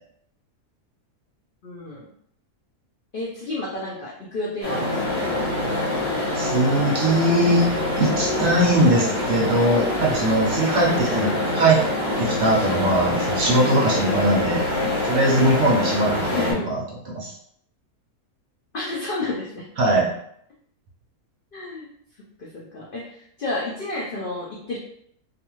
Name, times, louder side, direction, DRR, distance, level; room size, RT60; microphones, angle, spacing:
voice 1, 1.6-2.0 3.1-5.2 16.3-16.8 18.7-19.7 21.5-21.9 22.4-24.8, left 2 dB, 80° left, -4 dB, 0.4 m, -31 dB
sound 1, 4.6-16.5, left 1 dB, 35° left, 1.0 m, -25 dB
voice 2, 6.3-7.7 8.0-11.8 12.2-14.7 15.1-16.8 17.1-17.3 19.8-20.1, right 1 dB, 65° right, -3 dB, 0.7 m, -20 dB
2.5 x 2.4 x 2.9 m, 0.68 s
omnidirectional pair, 1.5 m